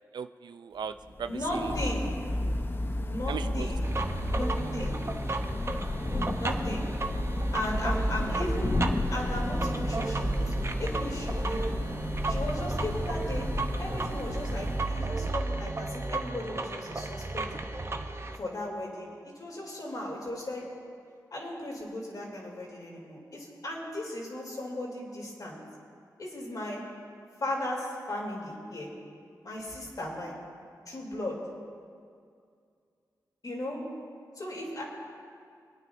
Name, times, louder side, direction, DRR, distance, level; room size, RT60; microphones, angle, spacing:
voice 1, 0.1-1.7 3.3-3.8, right 7 dB, 80° right, 11 dB, 0.4 m, -38 dB
Thunder / Rain, 1.0-15.4, left 2 dB, 30° left, 0.6 m, -33 dB
voice 2, 1.3-2.1 3.0-3.8 4.3-5.0 6.4-6.9 7.5-8.8 9.1-10.5 10.8-11.7 12.2-13.5 13.8-17.5 18.3-20.7 21.3-25.6 26.2-26.8 27.4-28.9 29.4-30.4 30.9-31.4 33.4-33.8 34.3-34.8, left 1 dB, 55° left, -3 dB, 3.2 m, -36 dB
sound 1, 3.8-18.4, right 2 dB, 35° right, 0.8 m, -33 dB
27.5 x 9.2 x 2.7 m, 2.3 s
cardioid pair, 60°, 7 cm